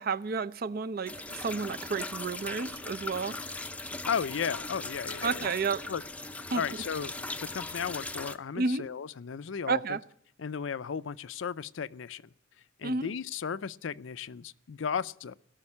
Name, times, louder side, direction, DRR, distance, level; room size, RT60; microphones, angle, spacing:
voice 1, 0.0-3.4 5.2-5.8 6.5-6.6 8.6-8.8 9.7-10.0 12.8-13.1, right 4 dB, 50° right, 0.5 m, -31 dB
sound 1, 1.1-8.4, left 2 dB, 5° left, 0.5 m, -39 dB
voice 2, 4.0-5.5 5.9-6.0 6.5-10.0 10.4-12.3 12.8-15.4, left 6 dB, 75° left, 0.5 m, -35 dB
17.5 x 6.4 x 9.7 m
head